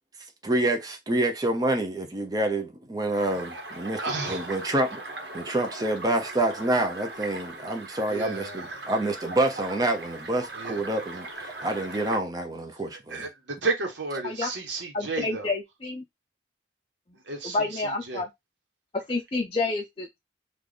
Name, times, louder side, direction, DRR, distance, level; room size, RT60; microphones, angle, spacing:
voice 1, 0.4-5.0 5.3-13.3, right 1 dB, 20° right, 0.6 m, -27 dB
sound 1, 3.1-12.2, right 2 dB, 65° right, 1.1 m, -39 dB
voice 2, 4.0-4.5 8.1-8.7 10.5-10.8 13.1-15.5 17.3-18.2, right 3 dB, 85° right, 1.0 m, -32 dB
voice 3, 14.9-16.0 17.4-18.3 19.1-20.2, left 3 dB, 30° left, 0.5 m, -29 dB
3.3 x 2.4 x 3.8 m
head